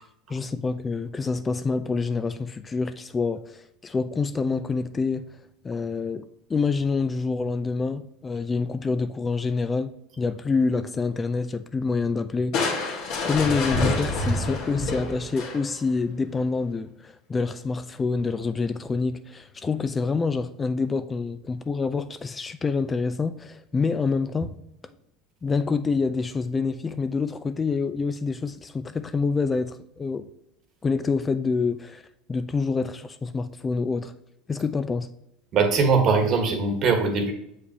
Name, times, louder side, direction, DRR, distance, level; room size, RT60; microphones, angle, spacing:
voice 1, 0.3-5.4 5.6-6.2 6.5-12.8 13.2-24.5 25.4-30.3 30.8-34.1 34.5-35.1, left 4 dB, 25° left, 0.3 m, -27 dB
Crushing, 12.5-15.9, left 2 dB, 60° left, 1.5 m, -27 dB
voice 2, 35.5-37.3, right 4 dB, 50° right, 1.3 m, -21 dB
6.7 x 4.9 x 2.8 m
hypercardioid pair, 90°, 0 cm